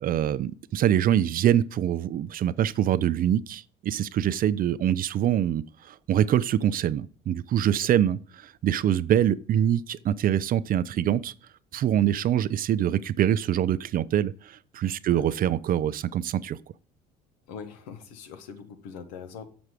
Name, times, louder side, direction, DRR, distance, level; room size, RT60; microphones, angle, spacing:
voice 1, 0.0-8.2 8.6-11.3 11.7-16.6, right 10 dB, 45° right, 0.4 m, -24 dB
voice 2, 17.5-19.4, left 6 dB, 80° left, 1.1 m, -42 dB
6.3 x 6.0 x 4.9 m
hypercardioid pair, 65°, 21 cm